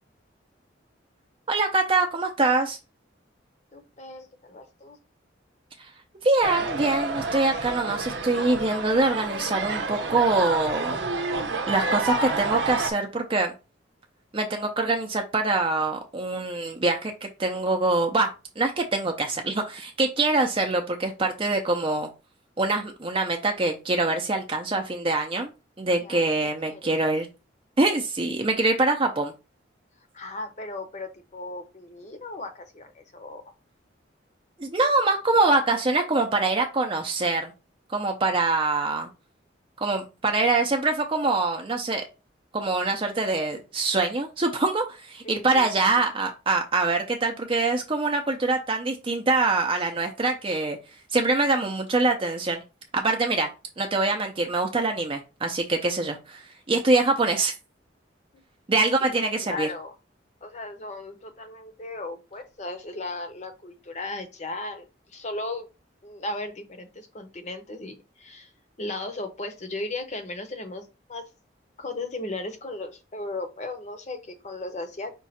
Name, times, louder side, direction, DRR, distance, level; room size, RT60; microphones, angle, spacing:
voice 1, 1.5-2.8 6.2-11.0 11.7-13.5 14.3-18.3 18.6-22.1 22.6-25.5 25.8-27.3 27.8-29.3 34.6-37.5 37.9-39.1 39.8-42.0 42.5-50.8 51.1-52.6 52.9-53.5 53.8-57.5 58.7-59.7, right 3 dB, 30° right, 3 dB, 0.5 m, -24 dB
voice 2, 3.7-5.0 25.8-26.3 26.6-27.0 30.1-33.4 45.2-45.7 59.0-60.0 60.4-65.7 66.0-68.5 68.8-71.2 71.8-75.1, left 2 dB, 35° left, 8 dB, 0.7 m, -36 dB
sound 1, 6.4-12.9, right 3 dB, 65° right, 0.7 m, -29 dB
5.2 x 2.4 x 4.1 m, 0.29 s
head